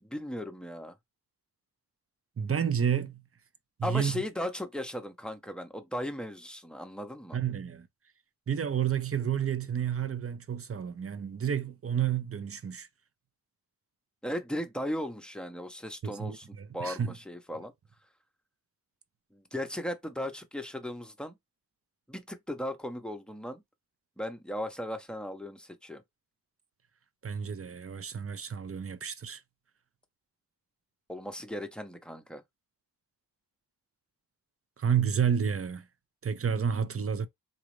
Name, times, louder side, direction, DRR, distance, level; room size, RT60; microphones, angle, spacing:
voice 1, 0.0-0.9 3.8-7.4 14.2-17.7 19.3-21.4 22.1-23.6 24.2-26.0 31.1-32.4, left 1 dB, ahead, 0.7 m, -37 dB
voice 2, 2.4-3.2 3.8-4.2 7.3-7.9 8.5-12.9 16.0-17.1 27.2-29.4 34.8-35.8 36.2-37.3, right 8 dB, 40° right, 0.5 m, -30 dB
3.9 x 2.4 x 3.1 m
wide cardioid pair, 95°, 37 cm